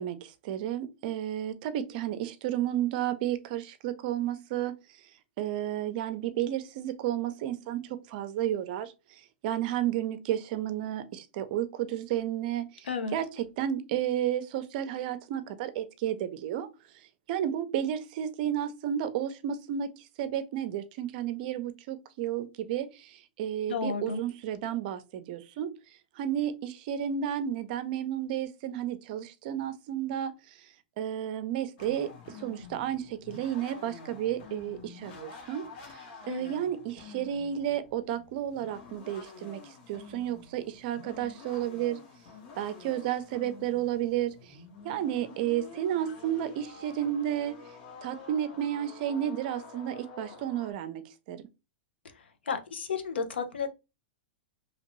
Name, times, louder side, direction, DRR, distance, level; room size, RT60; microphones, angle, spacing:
voice 1, 0.0-4.7 5.4-8.9 9.4-16.7 17.3-25.7 26.2-36.0 36.3-39.6 39.9-42.0 42.6-44.6 44.8-47.5 48.0-51.0 51.3-51.4, right 11 dB, 55° right, 0.5 m, -32 dB
voice 2, 12.8-13.2 23.7-24.2 36.3-36.6 52.5-53.7, left 5 dB, 90° left, 0.7 m, -32 dB
sound 1, 31.8-50.7, left 4 dB, 50° left, 1.1 m, -49 dB
2.9 x 2.5 x 3.0 m
hypercardioid pair, 125°, 6 cm